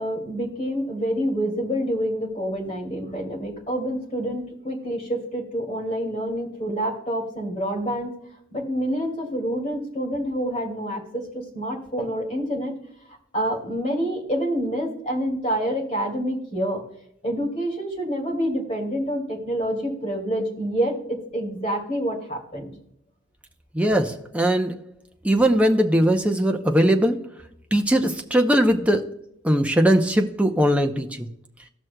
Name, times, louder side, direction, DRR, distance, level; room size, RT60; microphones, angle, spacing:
voice 1, 0.0-8.1 8.5-12.8 13.1-16.8 17.2-22.7, equal, 30° left, 0 dB, 2.3 m, -27 dB
voice 2, 23.7-24.7 25.2-27.2 27.7-29.0 29.4-31.3, equal, 5° right, 3 dB, 0.6 m, -20 dB
17.5 x 6.1 x 2.2 m, 0.73 s
head